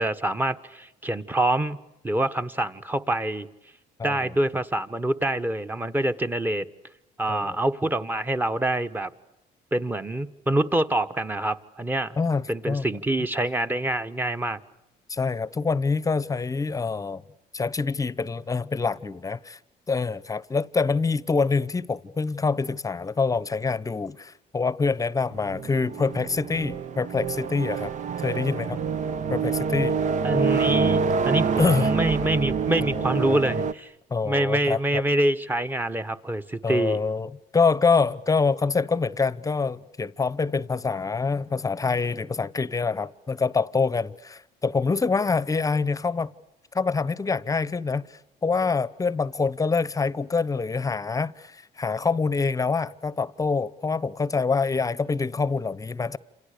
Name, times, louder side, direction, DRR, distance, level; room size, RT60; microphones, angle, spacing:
voice 1, 0.0-1.8 2.0-3.5 4.0-6.7 7.2-9.1 9.7-12.2 12.5-14.6 30.2-33.9 34.2-37.0, right 1 dB, 10° right, 1.4 m, -26 dB
voice 2, 4.0-4.3 7.3-7.6 12.2-12.9 15.1-17.2 17.5-19.6 19.9-27.9 28.2-28.8 29.3-30.0 31.6-31.9 32.9-33.4 34.1-35.0 36.6-46.3 46.7-56.2, left 4 dB, 20° left, 1.0 m, -26 dB
sound 1, 25.3-33.7, right 5 dB, 45° right, 0.9 m, -26 dB
30.0 x 27.5 x 6.8 m
cardioid pair, 110°, 17 cm